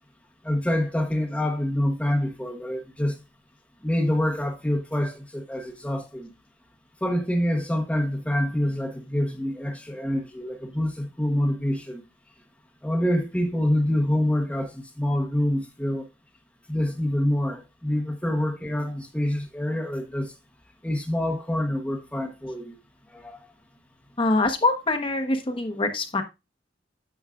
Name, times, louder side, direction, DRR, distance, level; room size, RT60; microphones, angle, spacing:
voice 1, 0.4-3.2 3.8-6.3 7.0-12.0 12.8-16.0 16.7-20.3 20.8-22.8 23.1-23.4, left 1 dB, 5° left, 1.0 m, -26 dB
voice 2, 24.2-26.2, left 2 dB, 30° left, 1.1 m, -24 dB
9.3 x 7.1 x 2.4 m
head